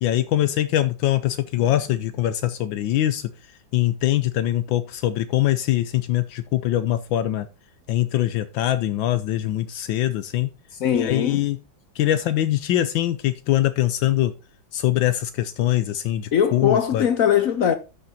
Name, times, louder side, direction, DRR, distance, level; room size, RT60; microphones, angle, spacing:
voice 1, 0.0-3.3 3.7-7.5 7.9-10.5 11.0-11.6 11.9-14.3 14.7-17.1, left 13 dB, 75° left, 1.3 m, -23 dB
voice 2, 10.8-11.4 16.3-17.8, left 8 dB, 60° left, 0.9 m, -20 dB
12.5 x 6.7 x 2.8 m
omnidirectional pair, 2.1 m